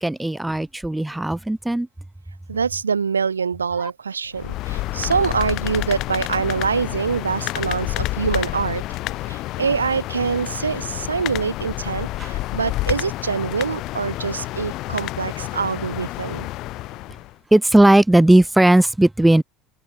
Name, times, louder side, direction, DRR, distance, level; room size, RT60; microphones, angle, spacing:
voice 1, 0.0-1.9 12.2-12.3 17.5-19.4, right 1 dB, 5° right, 0.6 m, -16 dB
voice 2, 2.5-8.8 9.3-16.5, right 6 dB, 80° right, 1.4 m, -24 dB
sound 1, 4.3-17.3, left 17 dB, 50° left, 0.8 m, -29 dB
figure-of-eight pair, 65°, 0 cm